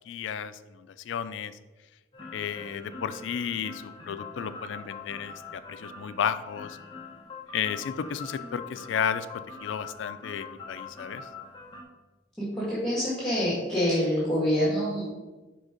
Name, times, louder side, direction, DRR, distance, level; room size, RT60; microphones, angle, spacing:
voice 1, 0.1-1.6 2.3-6.8 7.5-11.3, left 7 dB, 80° left, 13 dB, 0.3 m, -33 dB
sound 1, 2.1-11.8, left 4 dB, 25° left, 1.0 m, -43 dB
voice 2, 12.4-15.1, equal, ahead, -10 dB, 1.6 m, -26 dB
5.1 x 4.0 x 4.8 m, 1.1 s
head